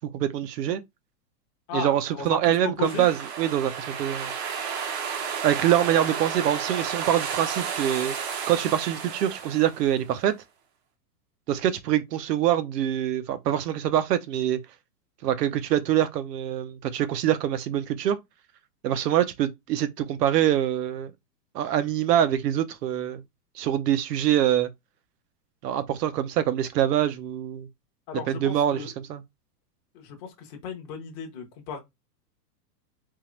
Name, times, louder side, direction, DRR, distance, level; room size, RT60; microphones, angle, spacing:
voice 1, 0.1-0.8 1.7-4.3 5.4-8.2 8.5-10.4 11.5-14.6 15.2-18.2 18.8-21.1 21.5-23.2 23.6-24.7 25.6-27.7 28.3-28.8 29.1-29.2, right 11 dB, 75° right, 0.8 m, -24 dB
voice 2, 1.7-3.1 28.1-28.9 29.9-31.8, left 7 dB, 20° left, 0.6 m, -35 dB
sound 1, 2.8-10.1, right 7 dB, 40° right, 0.6 m, -32 dB
3.8 x 2.9 x 3.0 m
supercardioid pair, 165°, 49 cm